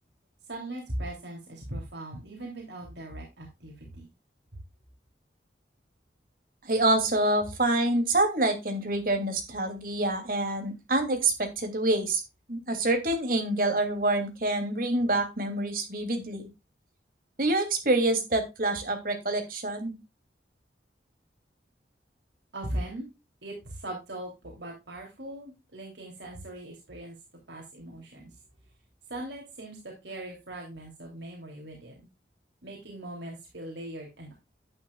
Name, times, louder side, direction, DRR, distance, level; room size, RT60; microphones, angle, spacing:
voice 1, 0.5-4.1 22.5-23.1 23.4-27.2 27.5-28.3 29.1-32.1 32.6-34.3, right 1 dB, 75° right, 0 dB, 3.2 m, -39 dB
voice 2, 6.6-12.2 12.5-16.5 17.4-19.9, right 2 dB, 50° right, 5 dB, 2.9 m, -26 dB
11.0 x 9.8 x 2.4 m, 0.25 s
head